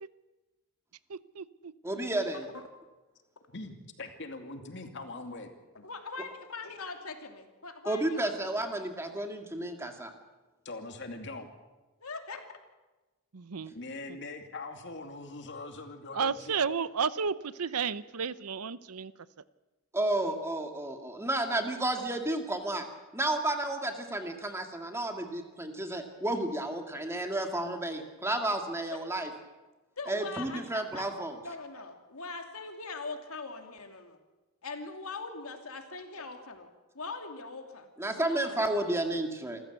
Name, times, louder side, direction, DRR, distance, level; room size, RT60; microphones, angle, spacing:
voice 1, 1.1-1.7 13.3-13.7 16.1-19.1, right 6 dB, 90° right, 16 dB, 0.7 m, -32 dB
voice 2, 1.8-2.4 7.9-10.1 19.9-22.8 23.1-29.3 30.1-31.3 38.0-39.6, right 1 dB, 10° right, 4 dB, 2.1 m, -32 dB
voice 3, 3.5-5.5 10.6-11.5 13.7-16.6, left 2 dB, 55° left, 5 dB, 2.5 m, -42 dB
voice 4, 5.7-8.7 12.0-12.4 30.0-31.1 31.4-34.2 34.6-36.7 36.9-37.9 38.2-39.0, left 3 dB, 75° left, 5 dB, 2.7 m, -42 dB
26.5 x 15.0 x 8.1 m, 1.2 s
head